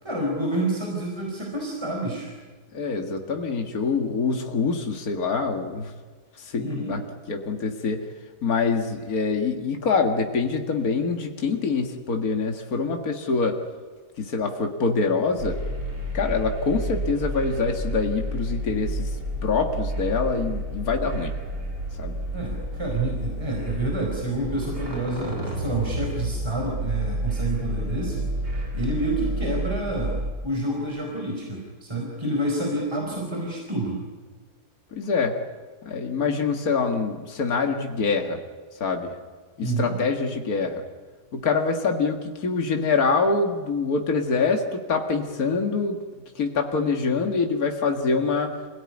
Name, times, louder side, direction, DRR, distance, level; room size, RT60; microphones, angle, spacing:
voice 1, 0.0-2.3 6.6-7.0 22.3-28.3 28.7-30.2 30.4-34.0 39.6-40.0, right 2 dB, 15° right, -1 dB, 4.7 m, -28 dB
voice 2, 2.7-5.9 6.4-7.0 7.3-8.0 8.4-13.6 14.2-15.6 16.1-19.2 19.4-21.3 22.0-22.2 34.9-35.4 35.8-38.4 38.8-39.1 39.6-40.8 41.3-46.0 46.4-48.5, left 4 dB, 65° left, 4 dB, 2.4 m, -25 dB
sound 1, 15.4-30.3, right 1 dB, 85° right, 5.4 m, -30 dB
26.5 x 17.5 x 9.9 m, 1.5 s
omnidirectional pair, 1.7 m